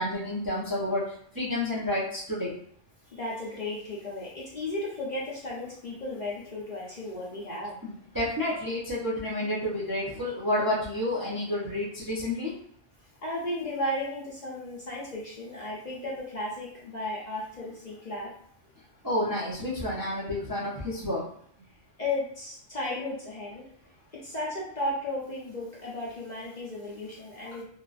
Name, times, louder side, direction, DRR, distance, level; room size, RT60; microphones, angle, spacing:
voice 1, 0.0-2.5 7.8-12.5 19.0-21.3, left 1 dB, 25° right, -7 dB, 0.5 m, -30 dB
voice 2, 3.1-7.8 13.2-18.3 22.0-23.6 24.2-27.6, left 1 dB, 45° left, -6 dB, 0.7 m, -34 dB
2.9 x 2.5 x 2.4 m, 0.63 s
omnidirectional pair, 1.2 m